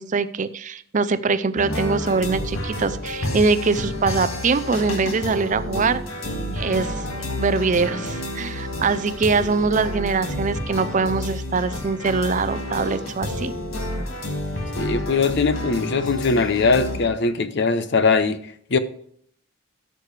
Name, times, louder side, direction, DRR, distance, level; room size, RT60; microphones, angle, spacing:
voice 1, 0.0-6.0 6.5-13.5, right 4 dB, 35° right, 0.5 m, -23 dB
sound 1, 1.6-17.1, left 1 dB, 90° left, 2.1 m, -29 dB
voice 2, 14.8-18.8, left 4 dB, 55° left, 0.7 m, -21 dB
14.0 x 6.5 x 3.3 m
head